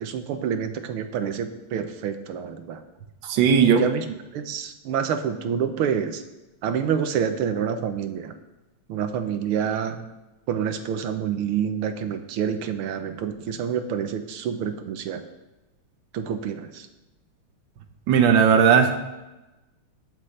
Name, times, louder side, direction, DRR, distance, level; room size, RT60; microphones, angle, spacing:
voice 1, 0.0-2.8 3.6-4.0 4.3-6.2 6.6-8.3 8.9-10.0 10.5-15.2 16.1-16.9, right 8 dB, 85° right, 8 dB, 1.7 m, -27 dB
voice 2, 3.2-3.8 18.1-19.0, right 7 dB, 65° right, 6 dB, 1.6 m, -17 dB
19.5 x 7.2 x 3.3 m, 1.0 s
omnidirectional pair, 2.4 m